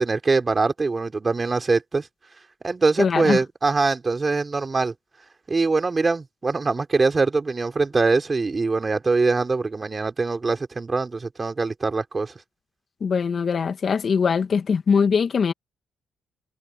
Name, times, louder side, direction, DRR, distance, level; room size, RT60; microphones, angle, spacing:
voice 1, 0.0-2.1 2.6-4.9 5.5-12.3, right 3 dB, 30° right, 4.0 m, -23 dB
voice 2, 3.0-3.4 13.0-15.5, left 6 dB, 45° left, 2.2 m, -21 dB
cardioid pair, 90°, 0 cm